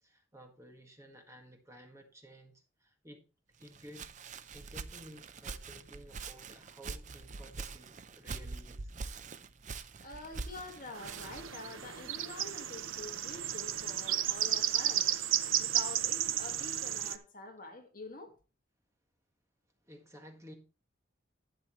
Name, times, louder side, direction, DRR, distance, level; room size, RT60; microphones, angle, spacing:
voice 1, 0.0-3.2 3.6-4.1 4.5-8.9 19.8-20.5, equal, 15° right, 1.7 m, -54 dB
Walk footsteps, 3.6-11.5, right 4 dB, 40° right, 0.5 m, -44 dB
voice 2, 10.0-15.2 15.6-18.3, left 2 dB, 45° left, 1.7 m, -47 dB
sound 1, 10.9-17.2, right 11 dB, 85° right, 0.7 m, -33 dB
12.0 x 8.6 x 3.0 m
head